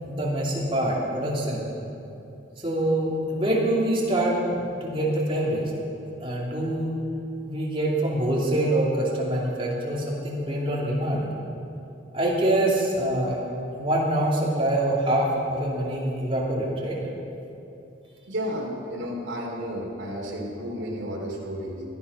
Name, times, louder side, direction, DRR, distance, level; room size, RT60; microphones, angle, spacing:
voice 1, 0.0-1.7 2.6-5.7 6.2-7.0 7.4-11.3 12.1-13.4 13.8-17.0, right 1 dB, 30° right, -4 dB, 2.8 m, -25 dB
voice 2, 18.3-21.8, equal, 70° right, -1 dB, 2.8 m, -32 dB
16.5 x 10.5 x 5.6 m, 2.8 s
head